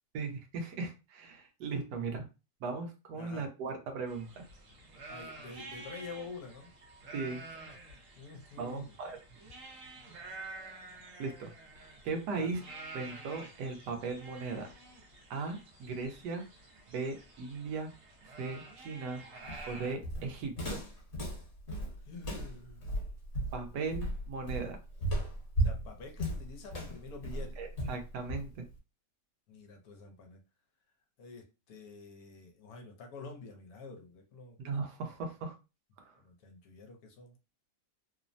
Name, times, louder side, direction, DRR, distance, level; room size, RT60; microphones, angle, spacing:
voice 1, 0.1-2.3 2.6-4.4 7.1-7.4 8.6-9.2 11.2-12.6 12.9-14.7 15.3-16.4 16.9-17.9 18.3-19.2 19.7-20.8 23.5-24.8 27.6-28.6 34.6-35.6 36.0-36.1, right 4 dB, 85° right, 5 dB, 1.3 m, -38 dB
voice 2, 3.1-3.5 5.1-6.7 8.2-9.0 12.4-12.6 22.0-23.0 25.6-27.6 29.5-30.4 31.2-34.6 36.2-37.4, left 4 dB, 70° left, 3 dB, 1.1 m, -48 dB
sound 1, 4.1-19.9, right 3 dB, 60° right, 1.0 m, -49 dB
Walk footsteps, 19.5-28.7, right 1 dB, 45° left, 1.4 m, -35 dB
3.1 x 2.0 x 2.5 m, 0.29 s
omnidirectional pair, 1.8 m